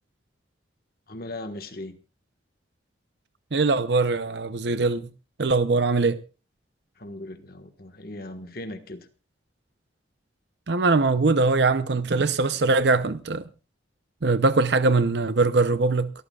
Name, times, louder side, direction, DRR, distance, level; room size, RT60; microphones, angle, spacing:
voice 1, 1.1-2.0 7.0-9.1, left 1 dB, 50° left, 1.5 m, -38 dB
voice 2, 3.5-5.1 5.4-6.2 10.7-13.4 14.2-16.1, right 3 dB, 65° right, 0.7 m, -22 dB
28.5 x 13.5 x 2.4 m
head